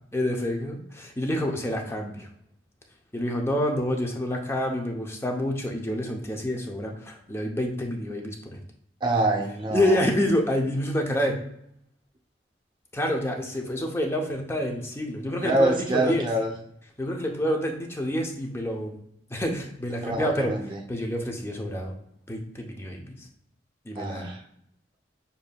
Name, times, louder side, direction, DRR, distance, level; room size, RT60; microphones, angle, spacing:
voice 1, 0.1-2.3 3.1-8.6 9.7-11.4 12.9-16.3 17.0-19.0 19.3-20.5 20.9-21.9 22.3-23.3 23.8-24.3, left 1 dB, 15° left, 1 dB, 0.6 m, -28 dB
voice 2, 9.0-10.0 15.4-16.5 20.0-20.8 24.0-24.4, right 2 dB, 25° right, 1 dB, 0.7 m, -26 dB
6.8 x 2.6 x 2.2 m, 0.73 s
head